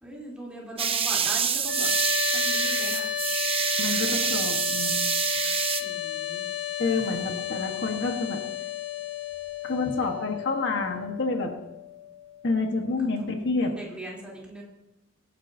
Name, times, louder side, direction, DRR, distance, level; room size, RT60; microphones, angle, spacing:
voice 1, 0.0-1.9 2.3-3.1 3.7-4.2 5.8-6.4 12.7-14.6, right 1 dB, 5° right, -5 dB, 3.5 m, -40 dB
sound 1, 0.8-5.8, right 7 dB, 30° right, 0.9 m, -26 dB
sound 2, 1.6-12.7, left 9 dB, 85° left, 5.5 m, -33 dB
voice 2, 3.8-4.9 6.8-8.4 9.6-11.5 12.4-13.7, left 3 dB, 65° left, 3 dB, 1.4 m, -28 dB
23.5 x 10.5 x 2.8 m, 0.92 s
head